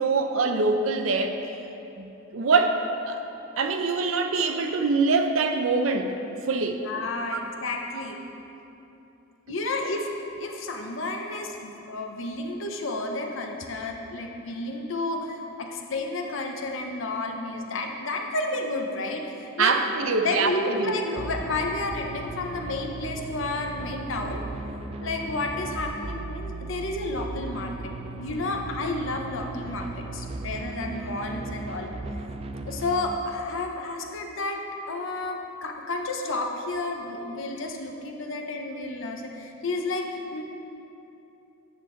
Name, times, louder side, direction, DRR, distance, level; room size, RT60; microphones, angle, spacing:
voice 1, 0.0-1.4 2.0-2.8 3.0-3.2 3.6-6.2 6.5-6.8 19.6-21.2, right 4 dB, 75° right, 6 dB, 0.6 m, -24 dB
voice 2, 6.8-8.2 9.5-19.8 20.2-24.5 25.0-31.9 32.7-40.4, left 2 dB, 65° left, 3 dB, 0.8 m, -31 dB
sound 1, 21.2-33.1, right 3 dB, 30° right, 0.3 m, -37 dB
8.8 x 6.6 x 3.8 m, 2.9 s
head